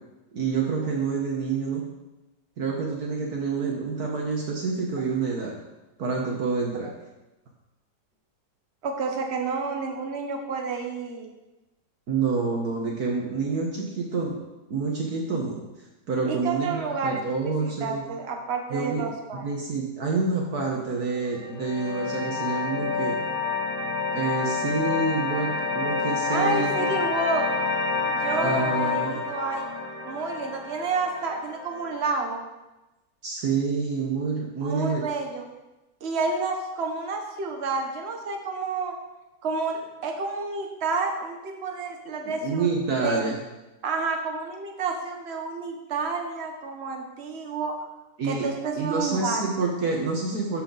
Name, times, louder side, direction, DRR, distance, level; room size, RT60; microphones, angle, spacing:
voice 1, 0.3-1.8 2.6-5.5 6.0-6.9 12.1-14.4 14.7-15.6 16.1-18.0 18.7-19.1 19.3-23.2 24.1-26.9 28.4-29.2 33.2-35.0 42.2-43.4 48.2-48.4 48.8-50.6, right 4 dB, 60° right, -2 dB, 1.7 m, -28 dB
voice 2, 8.8-11.3 16.2-17.2 17.6-19.4 26.3-27.5 28.1-29.7 30.0-32.4 34.6-35.5 36.0-39.0 39.4-42.7 43.0-43.2 43.8-47.8 48.2-49.4, right 4 dB, 40° right, 3 dB, 1.3 m, -29 dB
sound 1, 21.1-32.1, left 4 dB, 60° left, 3.9 m, -29 dB
13.0 x 6.7 x 4.0 m, 1.0 s
omnidirectional pair, 1.9 m